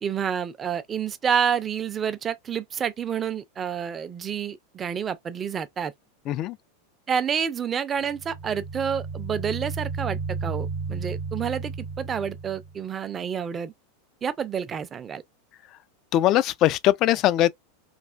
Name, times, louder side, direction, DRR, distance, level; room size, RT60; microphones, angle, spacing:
voice 1, 0.0-5.9 7.1-13.7 14.2-15.2, right 7 dB, 25° right, 0.5 m, -29 dB
sound 1, 8.0-12.8, right 4 dB, 55° right, 0.9 m, -33 dB
voice 2, 16.1-17.5, left 13 dB, 45° left, 0.3 m, -21 dB
3.2 x 2.3 x 2.4 m
hypercardioid pair, 95°, 0 cm